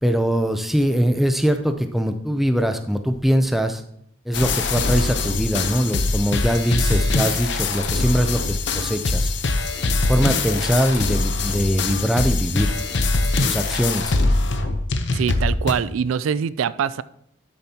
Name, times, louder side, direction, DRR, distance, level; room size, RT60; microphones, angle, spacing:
voice 1, 0.0-3.8 4.3-9.3 10.1-12.7 13.4-14.2, equal, ahead, 7 dB, 0.5 m, -22 dB
sound 1, 4.3-15.7, left 3 dB, 60° left, 0.8 m, -22 dB
sound 2, 6.8-8.1, right 3 dB, 65° right, 2.9 m, -41 dB
voice 2, 15.1-17.0, right 7 dB, 90° right, 17 dB, 0.3 m, -23 dB
12.0 x 7.0 x 2.9 m, 0.74 s
head